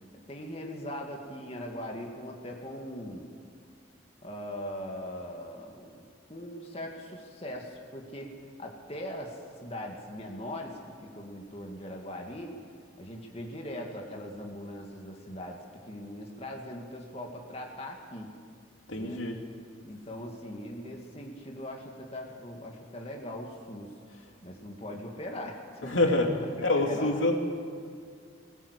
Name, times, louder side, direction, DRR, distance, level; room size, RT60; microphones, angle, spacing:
voice 1, 0.3-3.3 4.2-6.0 6.3-12.6 13.0-18.4 19.0-19.3 19.8-23.9 24.4-26.2 26.8-27.2, left 1 dB, 30° left, 0 dB, 2.4 m, -40 dB
voice 2, 18.9-19.4 25.8-26.3 26.6-27.4, left 2 dB, 85° left, 2 dB, 2.8 m, -26 dB
21.0 x 18.5 x 8.4 m, 2.1 s
head